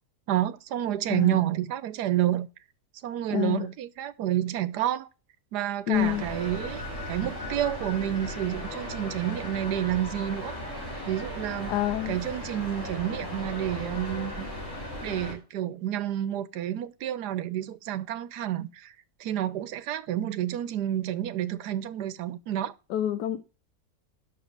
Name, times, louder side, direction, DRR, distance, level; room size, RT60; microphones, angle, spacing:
voice 1, 0.3-2.5 3.0-5.1 5.5-10.5 11.1-11.7 12.1-14.5 15.0-18.9 19.2-22.7, right 12 dB, 80° right, 1.3 m, -29 dB
voice 2, 1.1-1.4 3.3-3.7 5.9-6.3 11.7-12.2 22.9-23.5, left 12 dB, 85° left, 1.3 m, -27 dB
sound 1, 5.9-15.3, left 1 dB, 45° left, 4.6 m, -36 dB
7.1 x 6.3 x 6.5 m
omnidirectional pair, 1.8 m